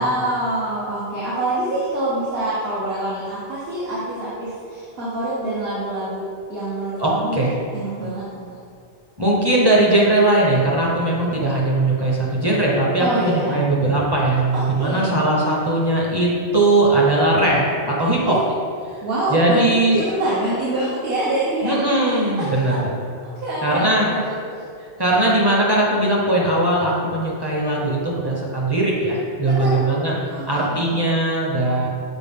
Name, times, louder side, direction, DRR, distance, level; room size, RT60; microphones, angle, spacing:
voice 1, 0.0-7.4 7.7-8.5 13.0-13.6 14.8-15.2 18.3-18.4 19.0-19.7 20.0-21.9 22.4-22.8 23.2-24.4 29.4-29.9 30.3-31.0, right 1 dB, 60° right, -9 dB, 1.4 m, -25 dB
voice 2, 7.0-7.5 9.2-18.4 19.3-20.0 21.6-22.9 23.6-24.1 25.0-30.2 30.5-31.9, right 2 dB, 20° right, -4 dB, 0.9 m, -19 dB
6.1 x 4.5 x 3.7 m, 2.2 s
omnidirectional pair, 1.2 m